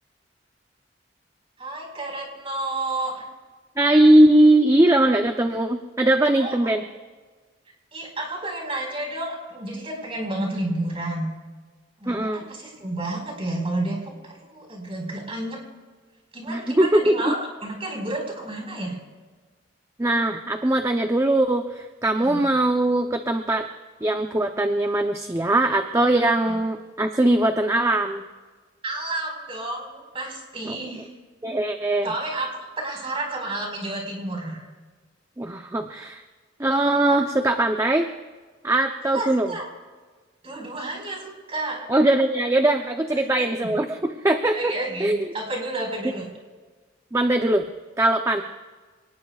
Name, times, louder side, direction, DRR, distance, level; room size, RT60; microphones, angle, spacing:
voice 1, 1.6-3.3 6.3-6.6 7.9-11.3 12.0-15.6 16.3-18.9 22.1-22.5 26.5-26.6 28.8-31.1 32.0-32.5 32.8-34.7 39.1-39.6 40.4-41.9 43.2-43.7 44.5-46.3, right 2 dB, 30° right, 0 dB, 4.8 m, -31 dB
voice 2, 3.8-6.8 12.1-12.4 16.5-17.3 20.0-23.7 24.0-28.2 30.6-30.8 31.4-32.1 35.4-36.2 36.6-38.1 38.6-39.5 41.9-44.7 45.0-45.2 47.1-47.6 48.0-48.4, right 1 dB, 15° right, 5 dB, 0.7 m, -20 dB
27.5 x 19.5 x 2.4 m, 1.4 s
head